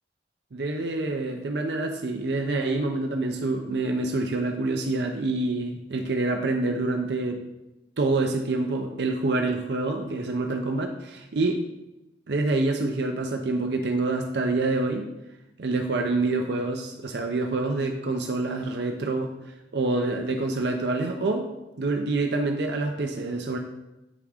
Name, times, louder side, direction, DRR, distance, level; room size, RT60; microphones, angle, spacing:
voice 1, 0.5-7.4 8.0-11.6 12.3-15.1 15.6-19.3 19.7-21.4 21.8-23.6, right 2 dB, 65° right, 3 dB, 0.6 m, -26 dB
8.4 x 3.5 x 4.9 m, 0.98 s
head